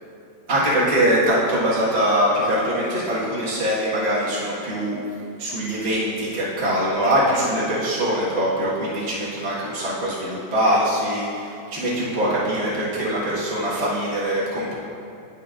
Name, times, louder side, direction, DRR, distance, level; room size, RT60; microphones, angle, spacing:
voice 1, 0.5-5.0 5.4-14.7, equal, 35° right, -9 dB, 1.8 m, -22 dB
10.5 x 8.9 x 2.6 m, 2.5 s
omnidirectional pair, 2.1 m